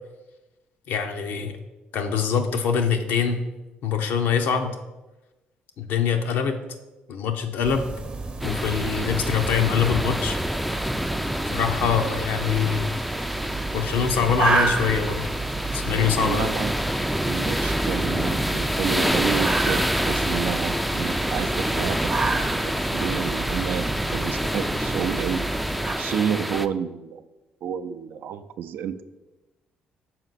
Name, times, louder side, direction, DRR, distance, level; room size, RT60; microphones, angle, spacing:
voice 1, 0.9-1.6 1.9-3.4 3.8-4.8 5.8-6.6 7.1-7.9 8.4-10.4 11.5-12.9 13.7-15.3 15.7-16.5, left 7 dB, 75° left, 5 dB, 0.6 m, -24 dB
sound 1, 7.6-25.9, right 3 dB, 30° right, 0.7 m, -31 dB
sound 2, 8.4-26.7, equal, ahead, 0.3 m, -27 dB
voice 2, 16.2-16.7 17.2-25.4 26.0-27.2 27.6-29.0, right 8 dB, 70° right, 11 dB, 0.4 m, -30 dB
6.0 x 4.4 x 4.0 m, 1.1 s
supercardioid pair, 65°, 4 cm